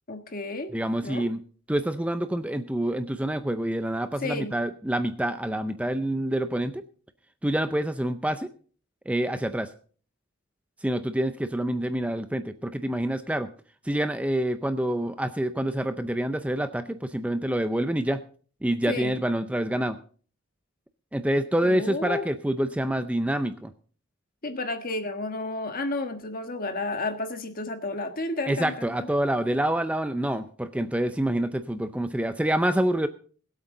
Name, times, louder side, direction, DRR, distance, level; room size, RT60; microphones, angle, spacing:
voice 1, 0.1-0.7 1.0-1.3 4.2-4.5 18.9-19.2 21.6-22.2 24.4-29.1, left 2 dB, 45° left, 7 dB, 1.5 m, -31 dB
voice 2, 0.7-1.4 1.7-6.8 7.4-8.5 9.1-9.7 10.8-13.5 13.8-18.2 18.6-20.0 21.1-23.7 28.5-33.1, right 1 dB, 5° right, 10 dB, 0.5 m, -27 dB
21.5 x 8.2 x 3.8 m, 0.43 s
head